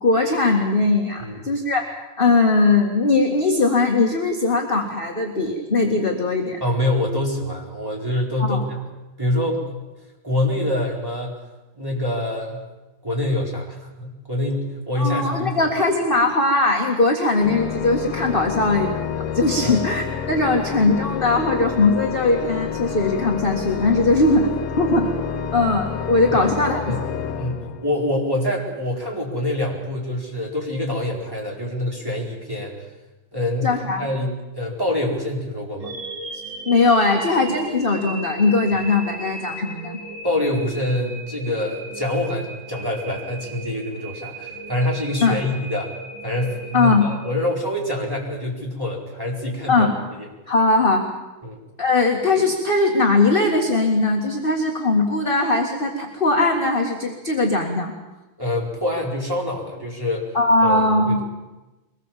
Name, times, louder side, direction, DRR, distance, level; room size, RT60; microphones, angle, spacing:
voice 1, 0.0-6.6 8.4-8.6 15.0-19.0 19.3-25.1 25.5-26.8 33.6-34.0 36.7-40.0 45.2-45.4 46.7-47.1 49.7-49.9 50.5-51.1 51.8-57.9 60.3-61.2, left 3 dB, 25° left, 1 dB, 1.9 m, -20 dB
voice 2, 6.6-8.8 9.2-9.8 10.2-11.4 11.7-12.6 13.0-15.7 19.6-19.8 26.3-26.5 26.9-27.0 27.3-32.7 33.3-35.9 40.2-45.9 46.2-49.9 50.2-50.3 51.4-51.6 58.4-60.3 60.6-61.2, left 1 dB, 10° right, -2 dB, 4.4 m, -25 dB
Organ, 17.3-28.3, left 7 dB, 85° left, 2.0 m, -29 dB
sound 1, 35.8-47.9, right 2 dB, 70° right, 3.8 m, -37 dB
23.5 x 20.0 x 7.5 m, 1.1 s
omnidirectional pair, 2.4 m